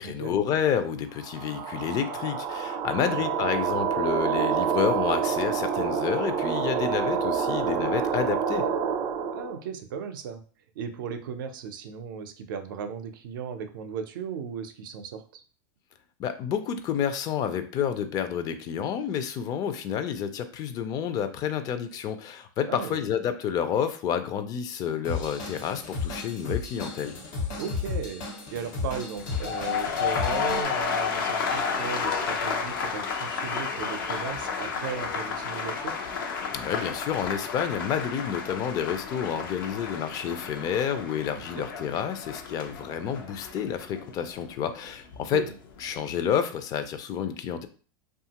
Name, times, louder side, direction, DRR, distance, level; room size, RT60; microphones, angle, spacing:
voice 1, 0.0-8.6 16.2-27.1 36.5-45.4 45.8-47.7, left 8 dB, 35° left, 10 dB, 0.4 m, -29 dB
sound 1, 1.2-9.6, right 7 dB, 30° right, 0.4 m, -27 dB
voice 2, 9.3-10.4 10.8-15.4 22.7-23.0 27.6-28.2 28.5-36.0 41.4-41.5 45.3-45.5, right 7 dB, 80° right, 8 dB, 0.5 m, -36 dB
Drum kit / Drum, 25.0-30.7, left 4 dB, 70° left, 1.2 m, -34 dB
sound 2, 29.2-45.2 45.5-46.0, left 6 dB, 85° left, 0.6 m, -32 dB
2.8 x 2.3 x 2.8 m, 0.39 s
supercardioid pair, 130°, 11 cm